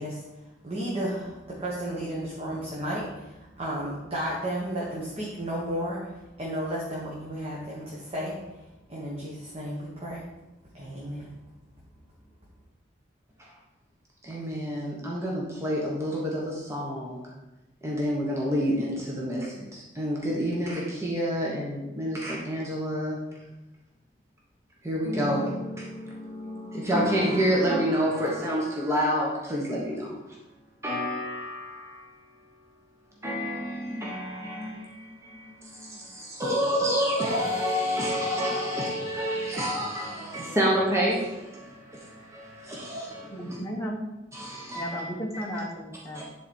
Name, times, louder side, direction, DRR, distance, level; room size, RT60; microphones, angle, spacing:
voice 1, 0.0-10.3 10.7-11.3, equal, 30° right, -5 dB, 1.4 m, -33 dB
voice 2, 14.2-17.2 17.8-23.2 24.8-30.2 30.8-32.1 33.2-43.3 44.3-45.0 45.3-45.4 46.1-46.2, equal, 15° right, -4 dB, 1.2 m, -29 dB
voice 3, 43.3-44.0 44.7-46.2, equal, 15° left, -2 dB, 1.0 m, -34 dB
10.0 x 4.2 x 4.4 m, 1.0 s
head